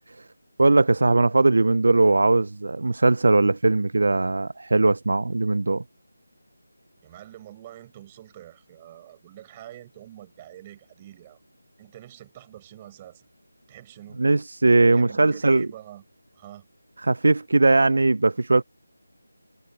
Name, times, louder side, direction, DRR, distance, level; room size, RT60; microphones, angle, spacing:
voice 1, 0.6-5.8 14.2-15.7 17.0-18.6, right 2 dB, 60° right, 0.5 m, -19 dB
voice 2, 7.0-11.4 11.8-13.3 13.7-14.3 14.9-16.0 16.3-16.6, right 13 dB, 15° right, 6.4 m, -46 dB
figure-of-eight pair, 175°, 0 cm